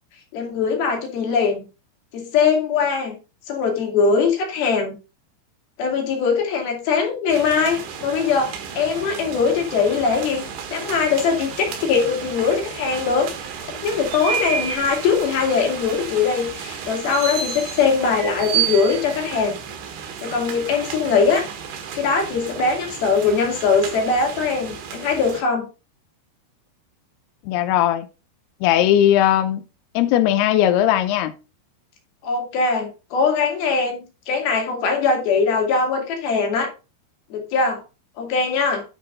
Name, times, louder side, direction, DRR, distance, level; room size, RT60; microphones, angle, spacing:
voice 1, 0.3-1.6 2.1-3.2 3.5-5.0 5.8-10.5 10.7-13.3 13.8-19.6 20.2-21.5 21.9-25.7 32.2-34.0 34.3-36.7 37.3-37.8 38.2-38.8, left 5 dB, 60° left, 3.8 m, -21 dB
sound 1, 7.3-25.4, right 8 dB, 80° right, 3.9 m, -31 dB
voice 2, 27.5-28.1 28.6-29.6 30.0-31.3, left 11 dB, 85° left, 2.3 m, -18 dB
10.5 x 5.7 x 3.8 m
omnidirectional pair, 5.2 m